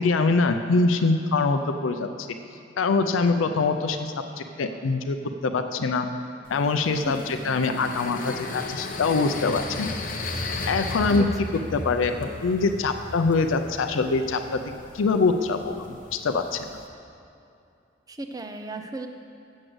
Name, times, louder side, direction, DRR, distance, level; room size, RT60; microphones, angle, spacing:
voice 1, 0.0-2.3 2.8-5.2 5.4-6.1 6.5-9.9 10.7-11.3 11.7-16.7, left 4 dB, 90° left, 7 dB, 0.5 m, -24 dB
sound 1, 6.5-16.9, left 2 dB, 45° left, 0.8 m, -36 dB
voice 2, 7.4-7.8 11.1-11.3 18.1-19.1, right 2 dB, 20° right, 6 dB, 0.5 m, -35 dB
7.8 x 6.4 x 7.7 m, 2.6 s
head